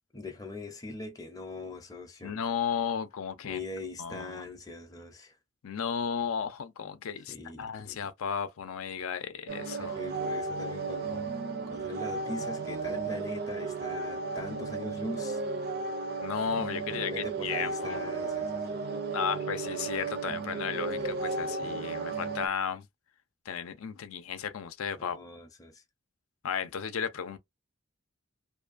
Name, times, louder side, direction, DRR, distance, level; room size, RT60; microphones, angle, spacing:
voice 1, 0.1-2.3 3.4-5.4 7.3-8.0 9.8-11.3 11.7-15.4 16.9-18.7 21.0-21.7 25.0-25.8, left 2 dB, 15° left, 0.5 m, -42 dB
voice 2, 2.2-3.6 4.0-4.5 5.6-10.0 16.2-18.0 19.1-22.9 23.5-25.2 26.4-27.4, left 7 dB, 90° left, 0.5 m, -34 dB
sound 1, 9.5-22.5, right 4 dB, 50° right, 0.4 m, -34 dB
2.6 x 2.2 x 2.5 m
head